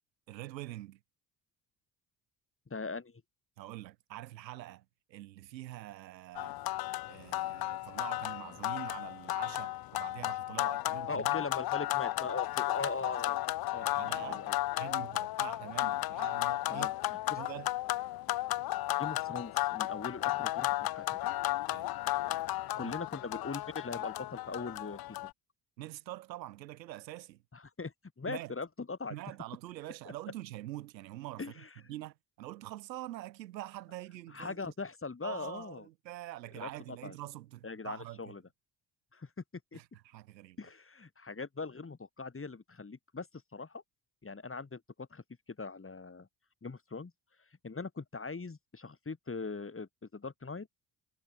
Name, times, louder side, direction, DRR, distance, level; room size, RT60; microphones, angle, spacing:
voice 1, 0.3-1.0 3.6-6.6 7.0-11.4 13.8-14.4 14.8-16.9 17.4-17.7 21.7-21.9 22.8-22.9 25.8-27.4 28.2-28.5 29.1-34.7 35.2-38.3 39.7-40.6, right 15 dB, 90° right, 2.6 m, -45 dB
voice 2, 2.7-3.2 11.1-13.4 13.7-13.9 14.2-14.6 16.7-17.4 19.0-21.3 22.8-25.0 27.5-29.2 31.4-31.7 34.3-35.9 36.5-36.7 37.0-37.2 37.6-38.4 39.1-39.3 39.7-39.8 40.6-43.3 43.5-43.8 44.2-45.2 45.6-46.3 46.6-47.1 47.6-50.7, left 4 dB, 25° left, 5.2 m, -40 dB
sound 1, 6.3-25.3, left 16 dB, 45° left, 0.7 m, -34 dB
hypercardioid pair, 55°, 50 cm